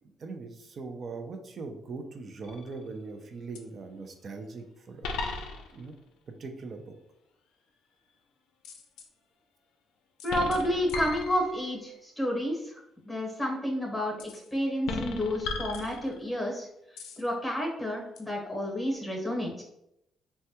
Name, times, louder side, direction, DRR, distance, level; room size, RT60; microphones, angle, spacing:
voice 1, 0.0-5.2 5.7-5.9 6.4-6.9, right 3 dB, 50° right, 5 dB, 0.5 m, -41 dB
sound 1, 2.4-2.9 3.5-3.6 5.0-5.9 8.6-9.1 10.2-11.8 14.2-14.5 14.8-16.4 17.0-17.3 18.2-18.3, left 3 dB, 90° left, 0.4 m, -36 dB
voice 2, 10.2-12.7 13.0-16.7 17.2-19.6, equal, 10° left, -1 dB, 0.9 m, -30 dB
3.3 x 2.2 x 2.8 m, 0.80 s
cardioid pair, 90°, 0 cm